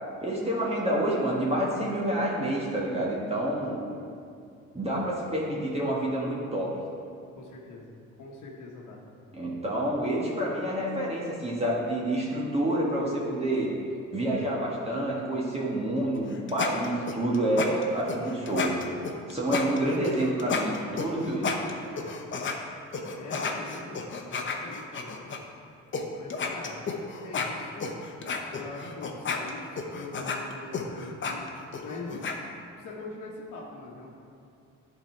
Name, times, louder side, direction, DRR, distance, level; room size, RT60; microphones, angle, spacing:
voice 1, 0.2-3.8 4.7-6.7 9.3-13.7 14.1-18.7 19.3-21.6 21.9-22.1, right 1 dB, 20° right, -5 dB, 1.5 m, -28 dB
voice 2, 7.4-7.9 8.2-9.0 23.1-25.4 25.6-26.9 27.2-27.9 28.5-31.5 31.8-32.3 32.8-34.2, left 3 dB, 90° left, -4 dB, 1.0 m, -43 dB
sound 1, 16.1-22.6 22.9-25.4 25.9-26.0 26.3-32.4, left 5 dB, 40° left, 0.8 m, -32 dB
10.5 x 3.9 x 4.5 m, 2.4 s
cardioid pair, 90°, 30 cm